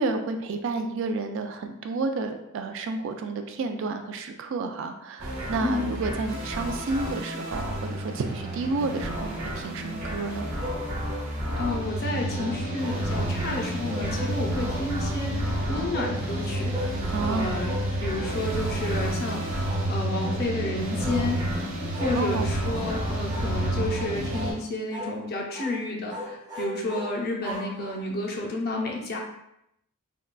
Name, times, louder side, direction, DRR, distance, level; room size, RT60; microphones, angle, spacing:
voice 1, 0.0-10.5 17.1-17.6 22.1-22.5, right 3 dB, 60° right, 6 dB, 0.3 m, -30 dB
sound 1, 5.2-24.5, right 1 dB, 80° right, 0.9 m, -30 dB
voice 2, 5.6-5.9 11.6-16.7 17.2-17.7 18.0-19.4 19.9-21.4 22.0-29.2, left 2 dB, 45° left, 0 dB, 0.5 m, -31 dB
sound 2, 10.6-11.3 12.3-13.4 13.8-14.9 15.9-16.2 16.7-17.0 17.7-17.9 18.2-18.4 18.8-19.0 19.7-19.9 20.2-20.5 21.0-21.3 21.9-22.2 22.7-23.0 23.3-23.5 23.9-24.6 24.9-25.2 25.5-25.8 26.1-28.2, left 1 dB, 20° right, 0.6 m, -38 dB
3.6 x 2.2 x 2.3 m, 0.79 s
head